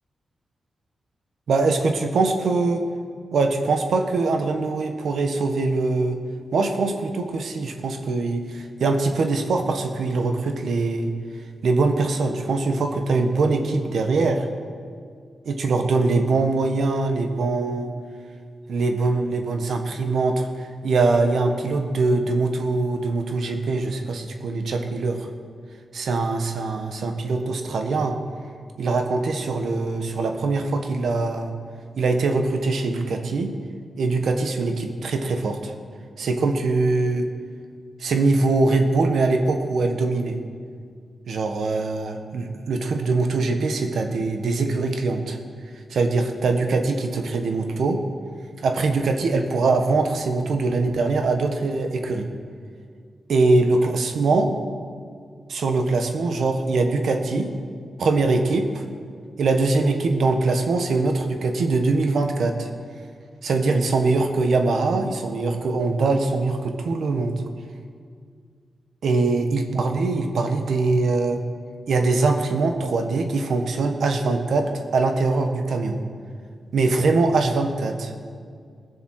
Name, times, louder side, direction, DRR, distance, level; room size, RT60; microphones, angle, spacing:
voice 1, 1.5-2.8 3.3-6.2 6.5-11.1 11.6-14.5 15.4-17.9 18.7-20.5 20.8-25.3 25.9-28.2 28.8-31.5 32.0-33.5 34.0-35.7 36.2-37.3 38.0-40.4 41.3-45.4 45.9-48.0 48.6-52.3 53.3-54.5 55.5-57.5 58.0-58.8 59.4-62.7 63.4-67.3 69.0-71.4 71.9-76.0 76.7-78.1, right 3 dB, 80° right, 5 dB, 1.3 m, -22 dB
20.5 x 7.1 x 6.4 m, 2.1 s
wide cardioid pair, 100°, 0 cm